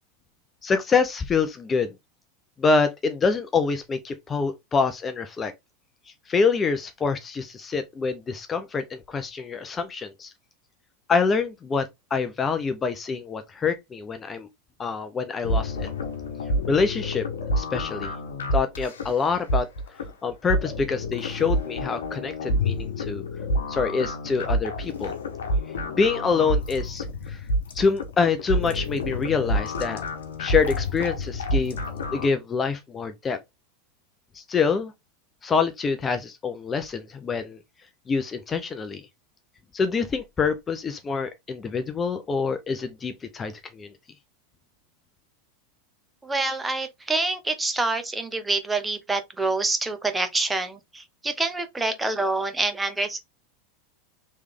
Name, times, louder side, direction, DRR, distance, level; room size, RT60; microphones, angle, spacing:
voice 1, 0.6-1.9 2.6-5.5 6.3-10.3 11.1-14.5 14.8-15.9 16.7-17.2 17.6-18.1 18.5-19.7 20.2-23.2 23.7-25.1 25.9-27.4 27.7-30.0 30.4-31.8 32.1-33.4 34.3-34.9 35.4-37.6 38.1-39.0 39.7-43.9, left 5 dB, 25° left, 0.5 m, -26 dB
sound 1, 15.4-32.3, equal, 85° left, 0.9 m, -28 dB
voice 2, 46.2-53.2, right 2 dB, 10° right, 0.8 m, -26 dB
3.2 x 3.2 x 3.5 m
hypercardioid pair, 100°, 0 cm